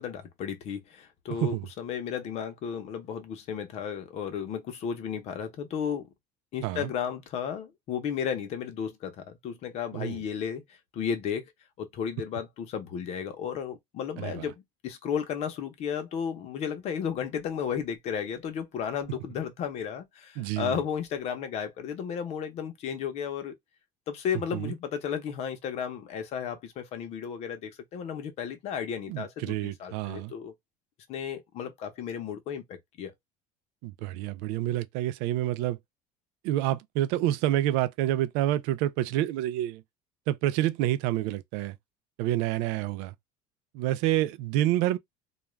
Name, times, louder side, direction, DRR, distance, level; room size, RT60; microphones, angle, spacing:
voice 1, 0.0-6.0 6.5-11.4 11.8-14.5 14.8-23.5 24.1-30.5 31.1-33.1, left 7 dB, 45° left, 0.7 m, -34 dB
voice 2, 1.4-1.7 6.6-6.9 9.9-10.2 14.2-14.5 20.4-20.8 24.5-24.7 29.1-30.3 33.8-35.8 36.4-39.8 40.3-41.7 42.2-43.1 43.7-45.0, right 14 dB, 80° right, 0.4 m, -28 dB
2.3 x 2.3 x 3.1 m
cardioid pair, 150°, 15 cm